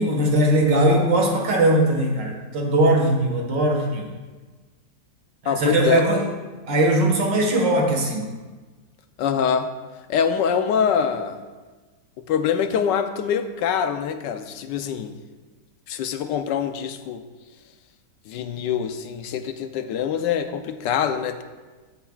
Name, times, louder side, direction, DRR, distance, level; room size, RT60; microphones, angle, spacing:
voice 1, 0.0-4.1 5.4-6.2 6.7-8.2, right 1 dB, 85° right, 1 dB, 2.3 m, -20 dB
voice 2, 5.5-6.0 9.2-9.7 10.1-11.4 12.3-15.2 15.9-17.2 18.3-21.4, left 7 dB, 85° left, 8 dB, 1.3 m, -24 dB
15.5 x 8.0 x 2.4 m, 1.3 s
omnidirectional pair, 1.9 m